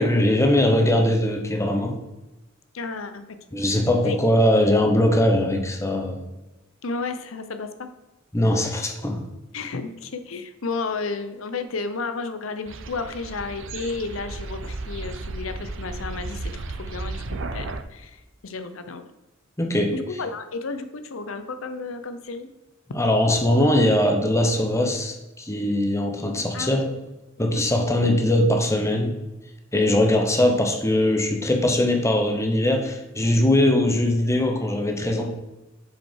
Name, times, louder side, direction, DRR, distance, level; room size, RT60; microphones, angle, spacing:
voice 1, 0.0-2.0 3.5-6.2 8.3-9.2 19.6-20.0 22.9-26.8 27.4-29.2 29.7-35.4, left 1 dB, 15° left, 4 dB, 1.0 m, -21 dB
voice 2, 2.7-3.6 4.0-4.2 6.8-7.9 9.5-19.0 19.9-22.5 26.5-27.0 27.4-27.6 29.9-30.0, left 4 dB, 85° left, 9 dB, 0.7 m, -32 dB
sound 1, 12.7-17.8, right 3 dB, 70° right, 0.6 m, -34 dB
7.4 x 5.5 x 4.6 m, 1.0 s
head